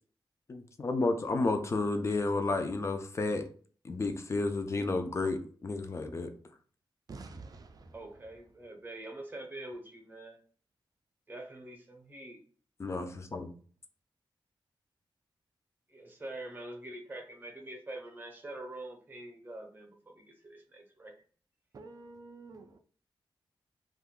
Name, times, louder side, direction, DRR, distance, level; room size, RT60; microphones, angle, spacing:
voice 1, 0.5-3.5 3.8-6.3 12.8-13.5, left 3 dB, 35° left, 0.4 m, -31 dB
voice 2, 7.1-8.3 21.7-22.8, right 3 dB, 45° right, 0.4 m, -49 dB
voice 3, 7.9-10.4 11.3-12.4 15.9-21.1, right 1 dB, 20° right, 0.7 m, -45 dB
2.6 x 2.3 x 3.6 m
wide cardioid pair, 150°, 9 cm